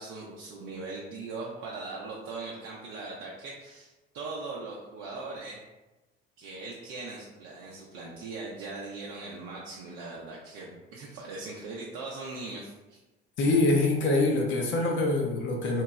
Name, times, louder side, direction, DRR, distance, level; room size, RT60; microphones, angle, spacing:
voice 1, 0.0-5.6 6.4-13.0, right 3 dB, 55° right, -3 dB, 0.6 m, -40 dB
voice 2, 13.4-15.8, left 2 dB, 40° left, 0 dB, 0.5 m, -24 dB
2.9 x 2.8 x 2.3 m, 1.1 s
figure-of-eight pair, 55°, 30 cm